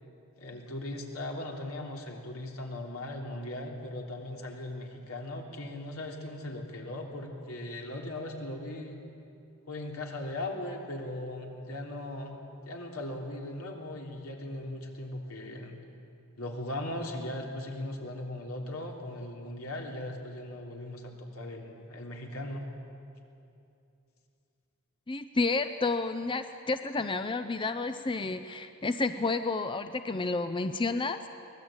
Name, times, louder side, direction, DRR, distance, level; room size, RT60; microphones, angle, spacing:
voice 1, 0.4-9.0 9.7-12.4 12.7-15.8 16.4-22.7, left 1 dB, 80° left, 1 dB, 3.3 m, -38 dB
voice 2, 25.1-31.3, left 3 dB, 25° left, 9 dB, 0.6 m, -30 dB
24.0 x 18.5 x 8.9 m, 2.7 s
head